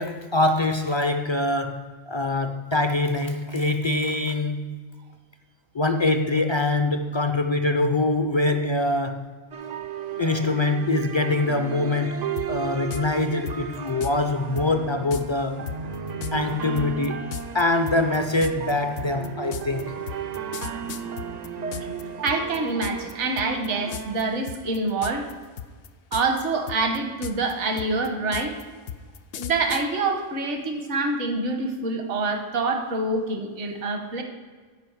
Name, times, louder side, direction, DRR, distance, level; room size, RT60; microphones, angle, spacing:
voice 1, 0.0-4.8 5.7-9.3 10.2-15.7 16.3-17.2 17.5-19.9, left 2 dB, 40° left, 6 dB, 0.4 m, -24 dB
sound 1, 9.5-25.0, right 7 dB, 50° right, 0.5 m, -35 dB
sound 2, 12.4-12.5 12.9-13.0 13.5-14.1 14.6-14.7 15.1-15.2 15.7-22.0 22.3-23.1 23.4-23.7 23.9-24.2 24.5-25.3 25.6-26.4 26.7-29.8, left 9 dB, 70° left, 0.8 m, -35 dB
voice 2, 22.2-25.3 26.1-28.6 29.3-34.2, right 3 dB, 70° right, 4 dB, 1.4 m, -26 dB
14.5 x 5.2 x 4.6 m, 1.5 s
omnidirectional pair, 1.3 m